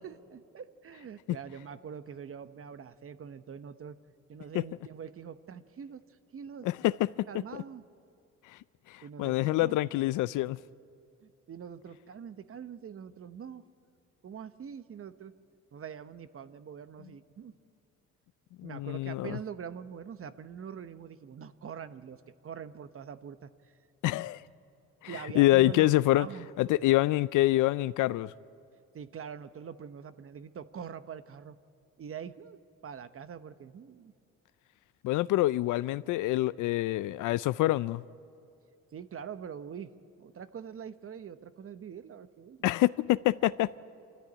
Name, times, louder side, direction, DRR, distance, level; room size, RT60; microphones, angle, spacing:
voice 1, 0.0-4.0 4.3-6.7 7.3-7.8 9.0-9.8 11.2-13.6 14.2-15.3 15.7-17.5 18.6-23.8 25.1-26.5 28.9-31.6 32.0-32.6 32.8-34.1 38.9-39.9 40.2-42.6, right 7 dB, 45° right, 0.9 m, -44 dB
voice 2, 8.9-10.6 18.6-19.4 24.0-24.4 25.0-26.3 26.6-28.3 35.0-38.0 42.6-43.8, left 16 dB, 85° left, 0.5 m, -26 dB
26.0 x 14.0 x 9.7 m
cardioid pair, 90°, 30 cm